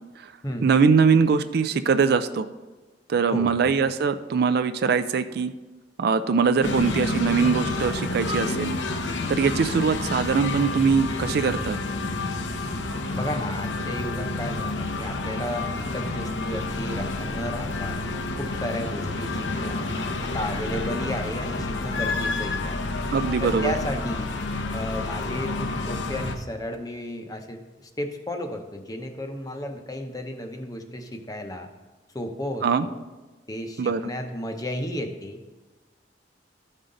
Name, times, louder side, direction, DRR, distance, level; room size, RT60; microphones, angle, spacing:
voice 1, 0.6-2.5 3.1-5.5 6.0-8.8 9.3-11.8 23.1-23.7 32.6-32.9 33.8-34.0, right 5 dB, 55° right, 10 dB, 0.4 m, -22 dB
voice 2, 3.3-3.7 13.1-18.0 18.4-19.9 20.2-22.9 23.4-24.3 24.7-31.7 32.1-32.9 33.5-35.4, left 1 dB, 20° left, 5 dB, 0.7 m, -33 dB
sound 1, 6.6-26.4, left 2 dB, 80° left, 0.8 m, -29 dB
13.5 x 5.5 x 3.8 m, 1.2 s
head